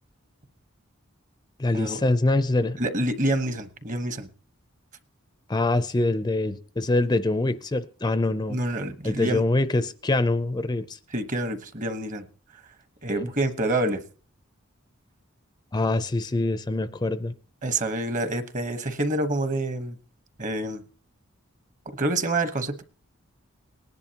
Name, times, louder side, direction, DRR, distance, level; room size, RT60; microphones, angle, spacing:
voice 1, 1.6-2.8 5.5-8.6 9.0-11.0 13.1-13.3 15.7-17.3, left 2 dB, 20° left, 12 dB, 0.5 m, -24 dB
voice 2, 2.8-4.3 8.5-9.4 11.1-12.2 13.0-14.0 17.6-20.0 20.4-20.8 21.9-22.8, right 1 dB, 40° right, 10 dB, 1.1 m, -27 dB
19.5 x 10.5 x 2.9 m, 0.38 s
head